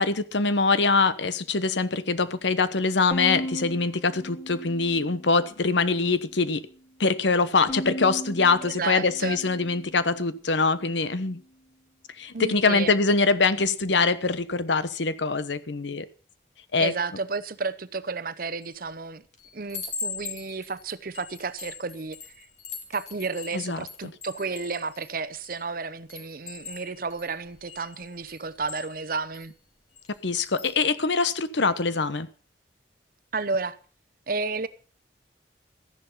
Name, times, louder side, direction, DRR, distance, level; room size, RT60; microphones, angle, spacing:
voice 1, 0.0-6.7 7.0-11.4 12.2-16.1 16.7-16.9 23.5-23.8 30.2-32.3, left 4 dB, 75° left, 1.0 m, -24 dB
Bowed string instrument, 3.1-5.5 5.9-6.7 7.7-10.2, equal, 15° left, 2.1 m, -37 dB
voice 2, 8.6-9.4 12.3-12.9 16.8-19.2 19.5-22.5 22.9-29.5 33.3-33.8 34.3-34.7, right 4 dB, 50° right, 0.8 m, -32 dB
Chime, 18.6-18.9 19.3-25.6 26.1-29.5 30.0-30.2 30.4-30.8, left 5 dB, 35° left, 2.6 m, -41 dB
14.0 x 11.0 x 5.6 m
head